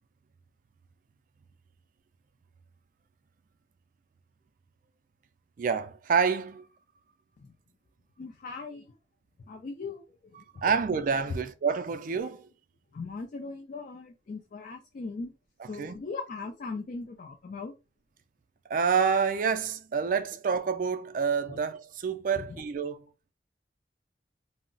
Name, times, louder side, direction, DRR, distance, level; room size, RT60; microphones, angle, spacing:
voice 1, 5.6-6.6 10.6-12.4 15.8-16.0 18.7-23.1, right 6 dB, 45° right, 0.3 m, -28 dB
voice 2, 8.2-9.0 9.5-10.6 11.3-11.4 12.9-15.3 15.7-17.7 21.5-21.6 22.4-22.6, left 4 dB, 45° left, 0.3 m, -39 dB
2.3 x 2.0 x 3.7 m
head